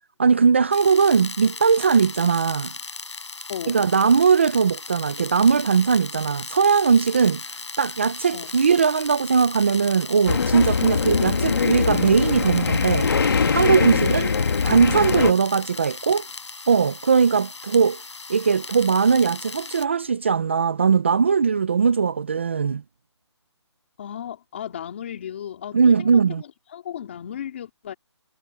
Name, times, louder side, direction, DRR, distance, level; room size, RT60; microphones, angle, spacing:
voice 1, 0.2-2.7 3.7-13.1 13.5-14.3 14.6-16.3 16.7-18.0 18.3-22.8 25.7-26.4, right 6 dB, 25° right, 0.6 m, -19 dB
sound 1, 0.7-19.9, left 4 dB, 75° left, 7.8 m, -37 dB
voice 2, 3.5-3.8 8.3-8.5 14.0-14.3 24.0-27.9, left 9 dB, 25° left, 2.8 m, -35 dB
sound 2, 10.3-15.3, left 5 dB, 50° left, 2.5 m, -22 dB
hypercardioid pair, 175°, 15 cm